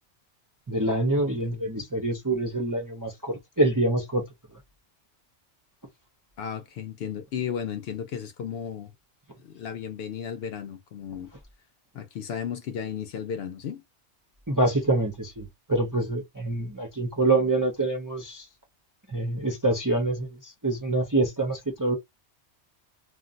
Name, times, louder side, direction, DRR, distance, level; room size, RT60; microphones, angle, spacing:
voice 1, 0.7-4.2 14.5-18.5 19.1-22.0, right 2 dB, 25° right, 0.4 m, -26 dB
voice 2, 6.4-8.9 9.4-11.3 11.9-13.8, left 8 dB, 65° left, 0.8 m, -34 dB
2.5 x 2.0 x 3.8 m
omnidirectional pair, 1.2 m